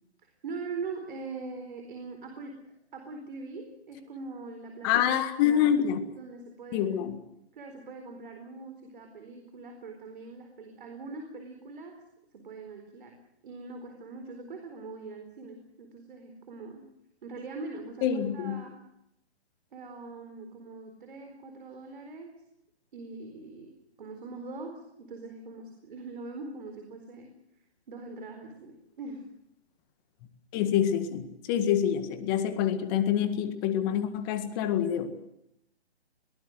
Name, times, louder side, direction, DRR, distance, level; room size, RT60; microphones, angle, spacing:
voice 1, 0.4-4.9 5.4-5.6 6.2-6.9 7.5-12.0 12.3-16.8 17.2-18.8 19.7-22.3 22.9-23.7 24.0-27.3 27.9-29.3, right 3 dB, 50° right, 4 dB, 4.4 m, -42 dB
voice 2, 4.8-6.0 6.7-7.2 18.0-18.6 30.5-35.3, left 9 dB, 20° left, 10 dB, 1.8 m, -26 dB
22.0 x 19.0 x 7.8 m, 0.79 s
hypercardioid pair, 150°, 33 cm